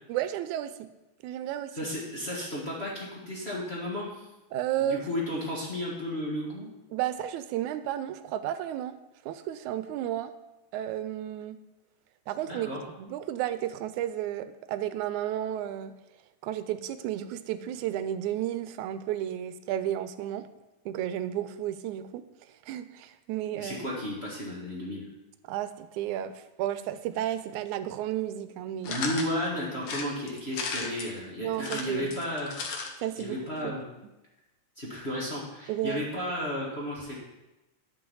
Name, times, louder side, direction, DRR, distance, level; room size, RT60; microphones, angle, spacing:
voice 1, 0.1-0.9 1.2-1.7 4.5-5.0 6.9-9.0 9.3-10.3 10.7-11.6 12.3-12.7 13.0-15.9 16.4-20.5 20.9-22.2 22.7-23.8 25.5-29.0 31.4-32.1 33.0-33.7 35.7-36.1, right 11 dB, 90° right, 12 dB, 2.0 m, -32 dB
voice 2, 1.7-4.3 4.8-6.7 12.5-12.8 23.6-25.0 28.8-32.6 33.2-33.8 34.8-37.2, left 1 dB, 30° left, -5 dB, 1.4 m, -33 dB
sound 1, 28.8-29.3 29.8-31.1 31.5-32.9 33.2-33.3 33.5-33.6, left 4 dB, 65° left, 1.1 m, -35 dB
10.5 x 5.4 x 5.5 m, 0.98 s
omnidirectional pair, 3.3 m